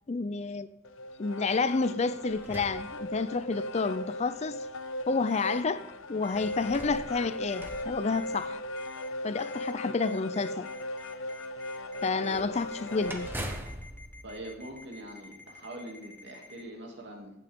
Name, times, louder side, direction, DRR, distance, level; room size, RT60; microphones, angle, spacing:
voice 1, 0.1-0.7 1.2-4.7 5.1-8.6 9.2-10.7 12.0-13.3, left 4 dB, 35° left, 0.4 m, -30 dB
sound 1, 0.8-13.5, left 1 dB, 80° left, 0.6 m, -38 dB
sound 2, 1.6-3.6 4.4-4.5 6.3-8.9 12.3-15.4, right 1 dB, 10° right, 1.2 m, -44 dB
Ringtone, 5.2-5.6 6.2-6.9 7.5-7.8 8.1-8.5 8.8-9.1 9.4-9.7 10.0-16.6, left 3 dB, 10° left, 1.0 m, -50 dB
voice 2, 12.1-12.5 14.2-17.3, right 1 dB, 60° right, 2.6 m, -43 dB
15.5 x 8.5 x 3.7 m
head